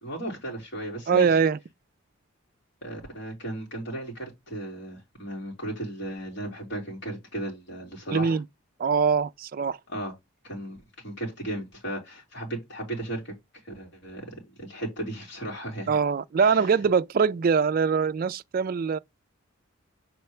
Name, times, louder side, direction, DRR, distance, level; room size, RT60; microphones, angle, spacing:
voice 1, 0.0-1.3 2.8-8.4 9.9-10.1 10.4-10.8 11.0-13.3 13.7-15.9 16.4-16.8, right 1 dB, 55° left, 3.3 m, -35 dB
voice 2, 1.1-1.6 8.1-8.5 8.8-9.8 15.9-19.0, right 6 dB, 45° right, 0.3 m, -23 dB
6.8 x 4.3 x 3.2 m
head